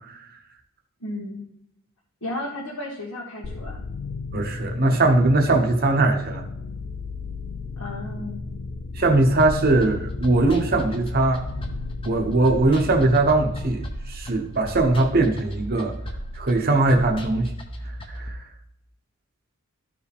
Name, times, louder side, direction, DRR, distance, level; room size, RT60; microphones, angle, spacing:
voice 1, 1.0-1.4 2.2-3.8 7.8-8.4, left 1 dB, 70° left, -4 dB, 1.6 m, -33 dB
sound 1, 3.4-13.7, left 3 dB, 50° left, 0.5 m, -34 dB
voice 2, 4.3-6.4 9.0-11.4 12.0-15.9 16.4-17.5 18.1-18.3, right 2 dB, 45° right, 3 dB, 0.9 m, -20 dB
sound 2, 9.4-18.3, equal, 25° left, 0.9 m, -36 dB
13.0 x 4.9 x 3.5 m, 0.79 s
head